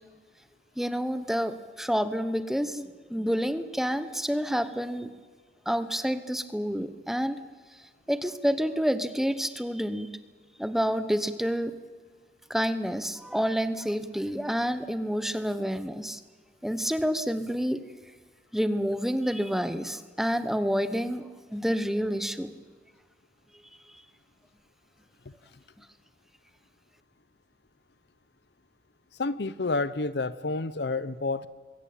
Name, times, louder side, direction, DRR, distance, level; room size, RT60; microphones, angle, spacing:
voice 1, 0.8-5.1 5.7-7.4 8.1-10.1 10.6-11.7 12.5-16.2 16.6-17.8 18.5-22.5, equal, ahead, 12 dB, 0.9 m, -28 dB
voice 2, 29.1-31.5, left 3 dB, 70° left, 17 dB, 0.8 m, -29 dB
21.5 x 17.5 x 8.7 m, 1.5 s
head